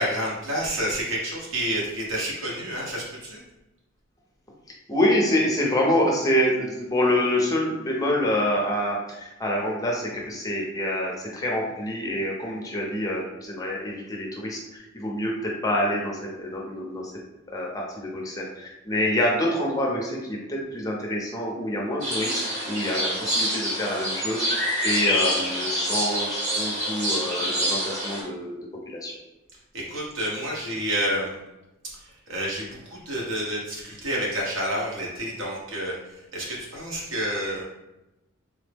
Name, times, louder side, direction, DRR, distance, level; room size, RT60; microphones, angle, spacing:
voice 1, 0.0-3.4 29.7-31.3 32.0-37.6, equal, 65° right, -4 dB, 1.0 m, -29 dB
voice 2, 4.9-17.1 17.5-28.6 28.9-29.1, left 1 dB, 15° left, -2 dB, 0.5 m, -26 dB
sound 1, 22.0-28.2, equal, 35° right, 1.0 m, -26 dB
3.4 x 2.0 x 3.3 m, 0.96 s
head